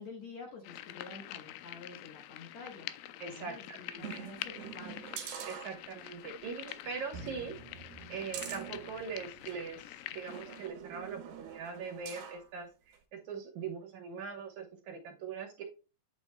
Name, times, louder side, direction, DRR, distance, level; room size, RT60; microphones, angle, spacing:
voice 1, 0.0-3.0 3.3-5.2, left 4 dB, 60° left, 2.0 m, -49 dB
sound 1, 0.6-10.7, left 14 dB, 85° left, 2.4 m, -46 dB
voice 2, 3.2-4.2 5.4-7.5 8.1-15.6, right 5 dB, 65° right, 2.1 m, -42 dB
sound 2, 4.0-6.2 6.6-6.8 7.1-9.6 10.3-12.5 12.9-13.0, right 8 dB, 85° right, 2.9 m, -45 dB
8.9 x 7.1 x 2.2 m
omnidirectional pair, 4.3 m